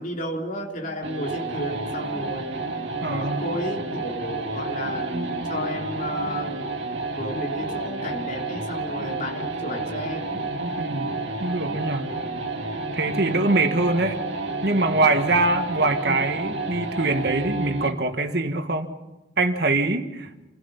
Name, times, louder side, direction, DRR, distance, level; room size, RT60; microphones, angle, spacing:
voice 1, 0.0-2.5 3.0-6.7 7.2-10.4, equal, 45° left, 3.4 m, -32 dB
sound 1, 1.0-18.0, right 3 dB, 80° right, 1.9 m, -30 dB
voice 2, 3.0-3.5 10.8-11.1 11.4-12.1 12.9-14.2 14.6-18.9 19.4-20.3, right 2 dB, 60° right, 1.8 m, -23 dB
28.5 x 17.0 x 5.6 m
head